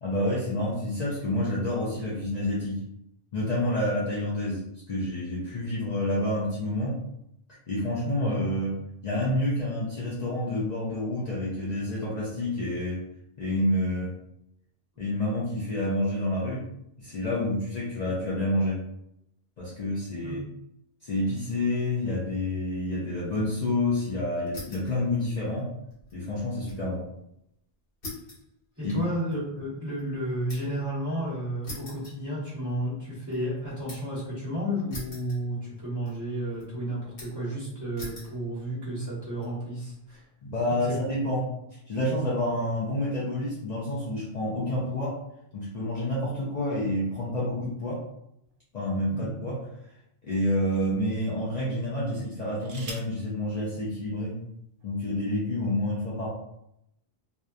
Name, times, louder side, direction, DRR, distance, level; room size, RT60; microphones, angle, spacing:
voice 1, 0.0-2.8 3.3-7.0 7.7-8.8 9.0-13.0 13.4-14.2 15.0-16.6 17.0-18.8 19.6-20.4 21.0-25.7 26.1-27.1 28.8-29.0 40.4-45.2 45.5-48.0 48.7-49.6 50.2-54.4 54.8-56.3, left 1 dB, 50° left, -7 dB, 0.6 m, -28 dB
voice 2, 8.2-8.5 20.2-20.4 28.8-40.2 40.8-41.0 49.1-49.5, equal, 20° right, -10 dB, 1.1 m, -32 dB
sound 1, 24.5-25.0 25.3-26.9 27.2-27.3 28.0-30.9 31.6-32.8 33.2-34.2 34.9-35.8 36.1-36.6 37.2-37.5 38.0-38.4 39.0-39.5, left 2 dB, 70° left, 1.2 m, -44 dB
sound 2, 48.4-49.7 50.4-50.5 52.2-53.2 54.4-54.5 54.8-55.2, right 3 dB, 70° right, 0.8 m, -45 dB
2.7 x 2.2 x 2.3 m, 0.79 s
omnidirectional pair, 1.1 m